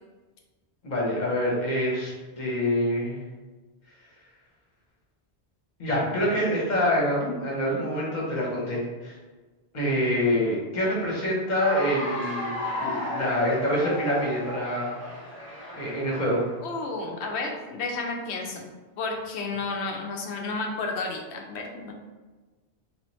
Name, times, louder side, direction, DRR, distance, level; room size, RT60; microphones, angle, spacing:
voice 1, 0.8-3.1 5.8-9.1 9.7-14.9 15.7-16.4, equal, 45° left, -4 dB, 1.1 m, -26 dB
Cheering / Applause, 11.4-16.6, left 1 dB, 10° left, 1.2 m, -34 dB
voice 2, 16.6-18.7 19.0-21.9, left 3 dB, 80° left, 1 dB, 0.9 m, -32 dB
3.4 x 3.1 x 3.0 m, 1.3 s
omnidirectional pair, 1.1 m